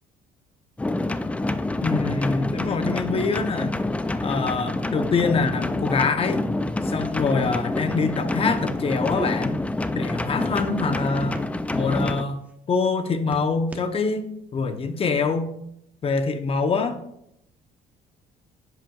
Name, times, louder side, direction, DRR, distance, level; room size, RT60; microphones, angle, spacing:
sound 1, 0.8-12.2, left 2 dB, 10° left, 0.3 m, -27 dB
voice 1, 1.8-3.8 4.2-6.4 6.8-9.6 9.9-11.4 11.7-12.4 12.7-15.5 16.0-17.0, left 4 dB, 35° left, 9 dB, 0.8 m, -25 dB
sound 2, 7.3-7.5 7.9-8.1 8.4-9.3 9.8-10.4 10.9-11.8 12.3-12.5 12.8-13.9 14.5-14.8, right 2 dB, 10° right, 1.0 m, -40 dB
9.9 x 7.8 x 2.4 m, 0.77 s
cardioid pair, 110°, 17 cm